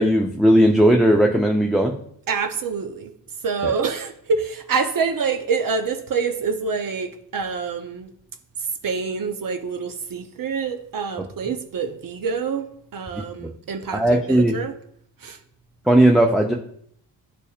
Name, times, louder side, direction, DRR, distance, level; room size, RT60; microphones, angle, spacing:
voice 1, 0.0-1.9 3.6-3.7 13.4-13.5 13.9-14.6 15.9-16.5, right 1 dB, ahead, 0.6 m, -17 dB
voice 2, 2.3-3.1 3.4-8.1 8.8-14.8 15.2-15.4, right 5 dB, 45° right, 0.8 m, -26 dB
10.0 x 4.1 x 2.4 m
hypercardioid pair, 40°, 47 cm